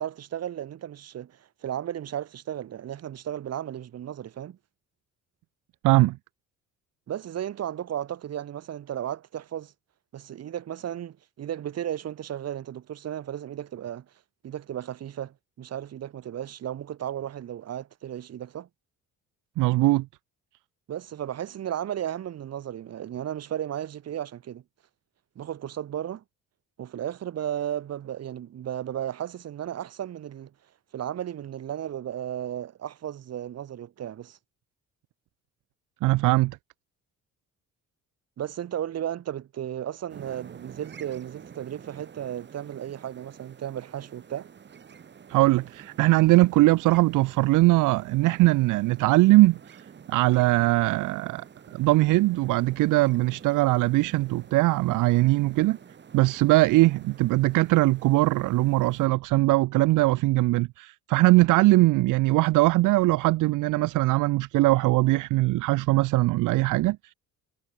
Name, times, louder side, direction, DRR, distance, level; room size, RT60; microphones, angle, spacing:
voice 1, 0.0-4.6 7.1-9.7 10.1-14.1 14.4-18.7 20.9-24.6 25.4-26.2 26.8-30.5 30.9-34.4 38.4-44.5, right 10 dB, 55° right, 3.8 m, -34 dB
voice 2, 5.8-6.2 19.6-20.1 36.0-36.6 45.3-51.4 51.7-55.8 56.1-67.1, right 19 dB, 80° right, 0.7 m, -21 dB
sound 1, 40.1-59.1, right 7 dB, 35° right, 3.0 m, -49 dB
cardioid pair, 125°, 30 cm